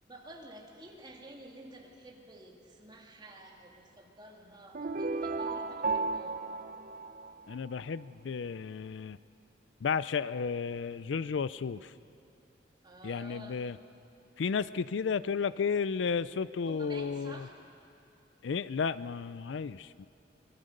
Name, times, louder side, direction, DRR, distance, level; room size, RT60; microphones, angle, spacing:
voice 1, 0.0-6.4 12.8-13.6 16.7-17.5, right 1 dB, 25° right, 0 dB, 2.4 m, -50 dB
sound 1, 4.7-7.8, right 3 dB, 45° right, 0.7 m, -34 dB
voice 2, 7.5-9.2 9.8-11.9 13.0-13.8 14.4-17.5 18.4-20.1, left 5 dB, 75° left, 17 dB, 0.4 m, -33 dB
25.0 x 21.5 x 6.5 m, 2.6 s
head